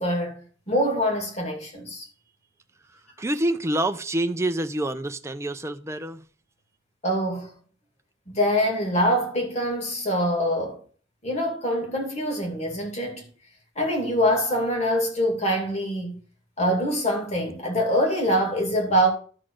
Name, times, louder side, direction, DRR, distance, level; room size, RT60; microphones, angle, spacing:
voice 1, 0.0-2.1 7.0-7.5 8.3-10.8 11.2-13.2 13.8-16.2 16.6-19.1, equal, 35° left, 2.4 m, -24 dB
voice 2, 3.2-6.2, right 1 dB, 15° right, 0.5 m, -27 dB
12.0 x 4.0 x 6.3 m
head